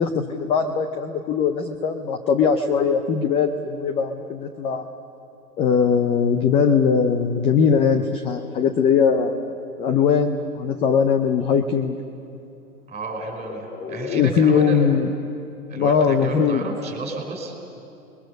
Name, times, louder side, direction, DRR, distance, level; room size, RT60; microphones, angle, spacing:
voice 1, 0.0-4.9 5.6-12.0 13.7-15.1 15.8-16.6, left 6 dB, 15° left, 7 dB, 0.5 m, -20 dB
voice 2, 12.9-15.0 15.7-17.5, right 2 dB, 15° right, 3 dB, 4.4 m, -31 dB
30.0 x 21.5 x 6.6 m, 2.8 s
hypercardioid pair, 125°, 45 cm